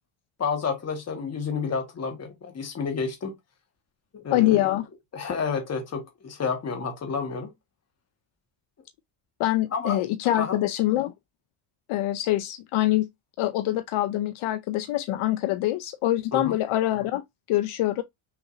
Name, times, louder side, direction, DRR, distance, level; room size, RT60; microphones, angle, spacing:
voice 1, 0.4-3.3 4.1-4.8 5.1-7.5 9.7-10.0 10.4-10.6 16.3-16.6, left 5 dB, 30° left, 1.4 m, -30 dB
voice 2, 4.3-4.8 9.4-11.1 11.9-13.1 13.4-17.2 17.5-18.0, left 15 dB, 75° left, 0.6 m, -24 dB
5.9 x 2.8 x 2.5 m
cardioid pair, 175°, 50 cm